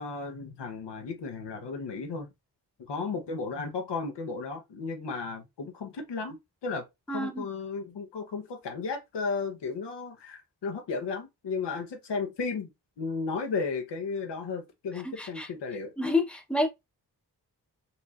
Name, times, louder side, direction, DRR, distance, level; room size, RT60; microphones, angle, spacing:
voice 1, 0.0-2.3 2.9-6.4 6.6-6.8 7.1-12.7 13.0-15.9, left 4 dB, 90° left, 0.9 m, -34 dB
voice 2, 7.1-7.5 15.2-15.5 16.0-16.7, left 2 dB, 5° left, 0.9 m, -28 dB
4.1 x 3.1 x 2.4 m
cardioid pair, 50°, 40 cm